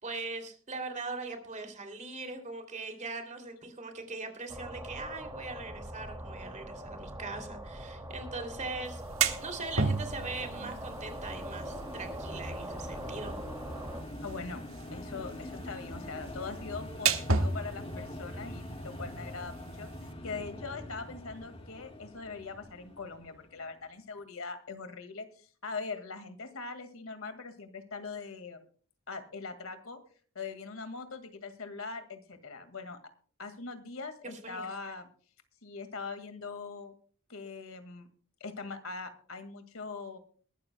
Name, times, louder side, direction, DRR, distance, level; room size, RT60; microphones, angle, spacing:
voice 1, 0.0-9.0 9.4-13.4 34.4-34.7, right 3 dB, 35° right, 6 dB, 2.9 m, -40 dB
sound 1, 4.5-14.0, right 1 dB, 15° right, 2.5 m, -42 dB
sound 2, 8.9-20.1, right 4 dB, 70° right, 1.6 m, -36 dB
sound 3, 9.2-23.7, left 1 dB, 30° left, 2.0 m, -44 dB
voice 2, 14.2-14.6 14.9-19.9 20.2-28.6 29.1-30.0 30.4-33.0 33.4-35.1 35.6-36.9 37.3-38.1 38.4-40.2, left 4 dB, 80° left, 9 dB, 2.0 m, -42 dB
22.0 x 12.5 x 2.3 m, 0.43 s
head